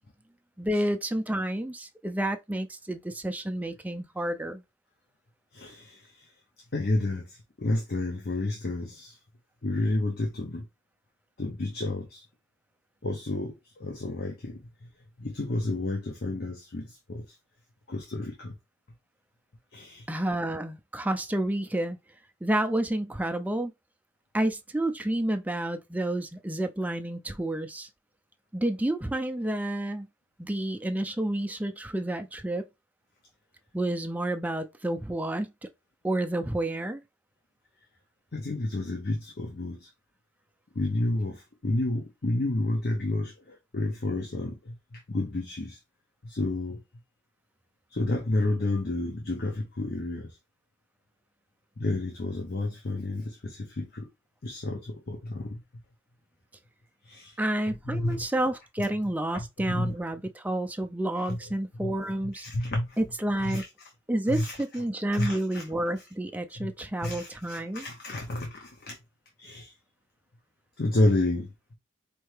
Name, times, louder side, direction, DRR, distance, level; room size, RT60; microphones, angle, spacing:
voice 1, 0.6-4.6 20.1-22.0 22.4-23.7 24.3-27.9 28.5-30.1 30.4-32.6 33.7-35.7 36.0-37.0 57.4-62.5 63.0-63.6 64.1-67.9, right 1 dB, 10° right, 0.4 m, -30 dB
voice 2, 5.5-6.3 6.7-9.2 9.6-10.6 11.4-12.2 13.0-14.9 15.2-17.4 17.9-18.5 19.7-20.1 38.3-39.9 40.7-45.8 46.2-46.8 47.9-50.4 51.8-54.1 54.4-55.6 57.0-57.4 57.9-58.3 59.3-60.0 61.1-61.4 61.8-61.9 62.3-63.0 63.4-63.9 64.3-64.6 65.1-65.7 66.6-66.7 67.0-69.0 69.4-69.7 70.8-71.5, left 2 dB, 55° left, 0.8 m, -30 dB
4.4 x 2.7 x 3.2 m
head